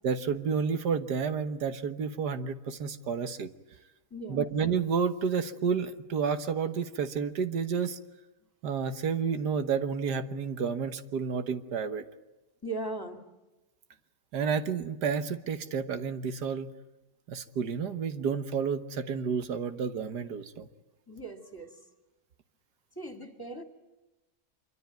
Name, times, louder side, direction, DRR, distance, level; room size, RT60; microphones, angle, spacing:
voice 1, 0.0-3.5 4.3-8.0 8.6-12.0 14.3-16.7 17.3-20.7, right 6 dB, 85° right, 10 dB, 1.8 m, -30 dB
voice 2, 4.1-4.5 12.6-13.2 21.1-21.8 23.0-23.6, right 2 dB, 15° left, 6 dB, 2.5 m, -38 dB
25.5 x 24.0 x 9.3 m, 1.0 s
omnidirectional pair, 1.7 m